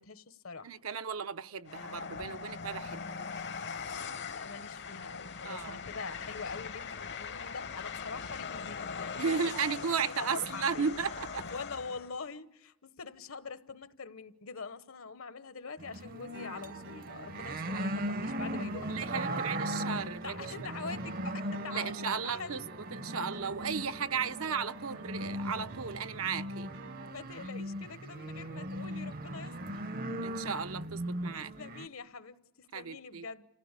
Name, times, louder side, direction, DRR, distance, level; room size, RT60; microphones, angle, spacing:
voice 1, 0.0-0.7 4.3-9.4 9.9-10.9 11.4-19.4 20.2-21.9 22.2-22.6 27.1-29.8 31.3-33.5, left 4 dB, 80° left, 1.1 m, -44 dB
voice 2, 0.6-3.3 5.4-5.8 9.2-11.4 17.7-17.8 18.9-20.7 21.7-26.7 30.2-31.5 32.7-33.3, right 6 dB, 80° right, 0.7 m, -35 dB
Train, 1.7-12.2, left 6 dB, 55° left, 0.8 m, -41 dB
sound 1, 15.8-31.9, right 1 dB, 45° right, 0.7 m, -39 dB
sound 2, 16.3-27.1, right 2 dB, 65° right, 1.2 m, -48 dB
29.0 x 15.5 x 8.3 m
head